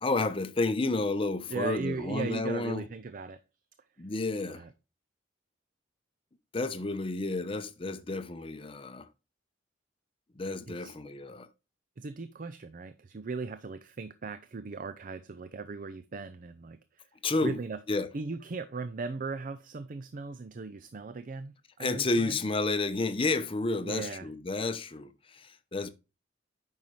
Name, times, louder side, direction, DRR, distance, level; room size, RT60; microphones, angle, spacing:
voice 1, 0.0-2.9 4.0-4.6 6.5-9.1 10.4-11.5 17.2-17.6 17.9-18.1 21.8-25.9, left 3 dB, 30° left, 0.7 m, -31 dB
voice 2, 1.5-3.4 4.5-4.7 10.7-10.9 12.0-17.1 17.4-17.8 18.1-22.4 23.8-24.3, right 4 dB, 45° right, 0.5 m, -38 dB
8.9 x 5.6 x 3.1 m
head